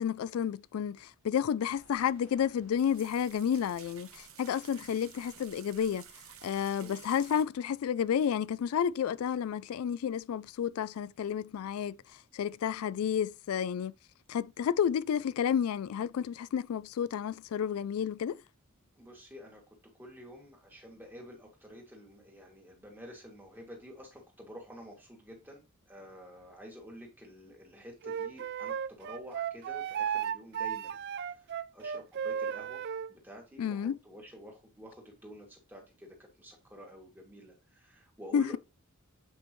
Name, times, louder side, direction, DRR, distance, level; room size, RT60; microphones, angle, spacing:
voice 1, 0.0-6.0 6.4-12.0 12.3-13.9 14.3-18.4 33.6-34.0 38.3-38.6, left 8 dB, 80° left, 0.3 m, -31 dB
sound 1, 1.7-7.4, right 8 dB, 70° right, 1.0 m, -53 dB
voice 2, 19.0-19.6 20.0-31.0 31.3-32.8 33.1-38.6, equal, 10° right, 2.3 m, -50 dB
Wind instrument woodwind instrument, 28.0-33.1, right 8 dB, 50° right, 0.3 m, -35 dB
8.6 x 5.4 x 3.1 m
head